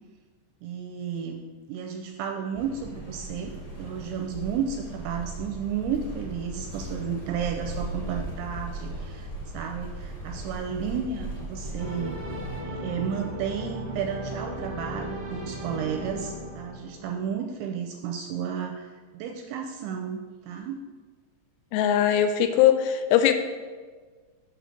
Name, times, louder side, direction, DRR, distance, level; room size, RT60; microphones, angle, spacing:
voice 1, 0.6-12.2 12.6-20.8, right 7 dB, 85° right, 3 dB, 2.6 m, -33 dB
sound 1, 2.5-12.6, right 1 dB, 35° left, 1.5 m, -38 dB
sound 2, 11.8-17.3, equal, 55° right, 0.6 m, -36 dB
voice 2, 21.7-23.3, left 10 dB, 85° left, 8 dB, 3.0 m, -20 dB
7.7 x 6.6 x 5.1 m, 1.4 s
omnidirectional pair, 5.6 m